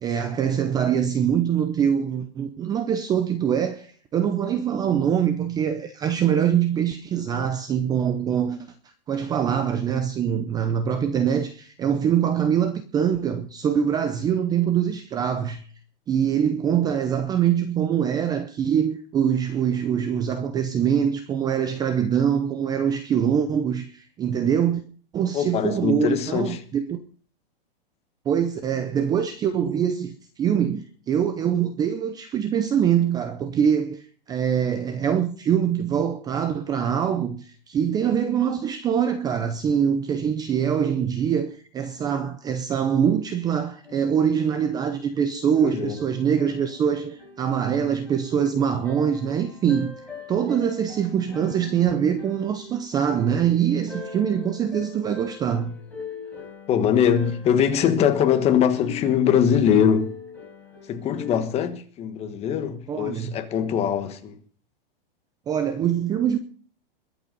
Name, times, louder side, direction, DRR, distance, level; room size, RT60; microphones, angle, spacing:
voice 1, 0.0-8.7 9.1-15.6 16.1-24.8 25.1-27.0 28.3-49.9 50.3-55.8 62.9-63.4 65.5-66.4, right 8 dB, 15° right, 0.6 m, -24 dB
voice 2, 25.3-26.6 45.6-46.0 56.7-60.1 60.9-64.4, left 8 dB, 20° left, 1.4 m, -22 dB
sound 1, 43.8-61.4, left 4 dB, 5° left, 4.4 m, -42 dB
22.0 x 8.0 x 5.3 m
hypercardioid pair, 155°, 29 cm